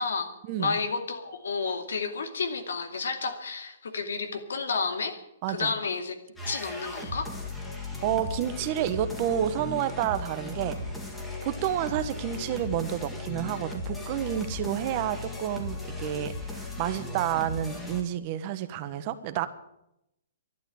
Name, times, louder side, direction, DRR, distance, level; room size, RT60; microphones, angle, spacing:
voice 1, 0.0-0.3 0.6-5.2 5.5-6.2 6.4-7.3, left 4 dB, 85° left, 7 dB, 2.4 m, -31 dB
voice 2, 5.4-5.7 8.0-10.8 11.4-19.5, right 11 dB, 35° right, 11 dB, 1.2 m, -30 dB
sound 1, 6.4-18.0, left 2 dB, 10° left, 2.2 m, -37 dB
12.0 x 12.0 x 8.7 m, 0.83 s
hypercardioid pair, 150°, 0 cm